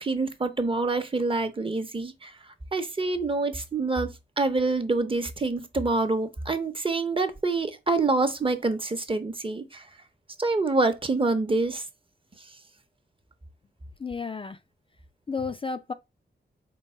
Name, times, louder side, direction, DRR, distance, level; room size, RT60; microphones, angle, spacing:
voice 1, 0.0-2.3 2.7-9.8 10.4-11.8, right 3 dB, 30° right, 0.8 m, -26 dB
voice 2, 14.0-14.6 15.3-15.9, left 4 dB, 30° left, 0.4 m, -32 dB
4.5 x 2.2 x 4.3 m
cardioid pair, 65°, 19 cm